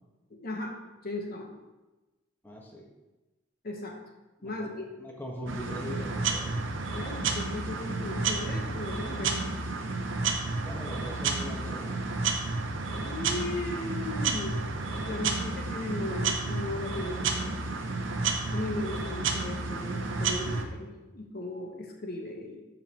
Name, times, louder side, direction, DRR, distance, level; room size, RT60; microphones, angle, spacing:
voice 1, 0.3-1.5 3.6-4.0 4.4-4.9 6.9-9.4 13.0-14.6 14.9-17.6 18.5-22.6, left 2 dB, 50° left, 1 dB, 1.1 m, -37 dB
voice 2, 2.4-2.9 4.4-4.7 5.0-6.6 10.6-12.3, equal, 10° left, -2 dB, 1.2 m, -41 dB
sound 1, 5.5-20.6, right 3 dB, 75° right, 0.8 m, -31 dB
13.0 x 5.3 x 3.0 m, 1.1 s
head